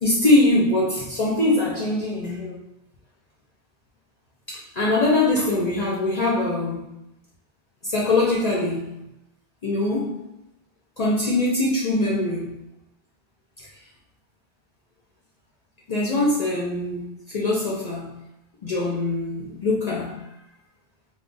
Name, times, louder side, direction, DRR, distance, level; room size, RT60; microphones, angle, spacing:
voice 1, 0.0-2.6 4.5-6.9 7.8-9.0 9.6-10.2 11.0-12.6 15.9-18.2 18.6-20.2, left 2 dB, 50° left, -4 dB, 0.6 m, -23 dB
2.3 x 2.0 x 3.8 m, 0.87 s
omnidirectional pair, 1.1 m